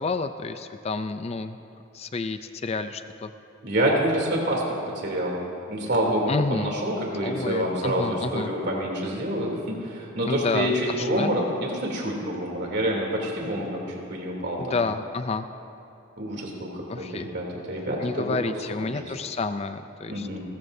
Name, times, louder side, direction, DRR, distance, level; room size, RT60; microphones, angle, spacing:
voice 1, 0.0-1.6 1.9-3.3 6.3-6.7 7.2-8.5 10.2-11.3 14.6-15.5 16.9-17.3 18.0-20.4, left 3 dB, 30° left, 10 dB, 0.4 m, -29 dB
voice 2, 3.6-5.4 5.7-14.8 16.2-17.0 17.3-18.3 18.8-19.0 20.1-20.4, right 1 dB, 55° right, -1 dB, 3.0 m, -27 dB
30.0 x 14.5 x 2.7 m, 2.8 s
head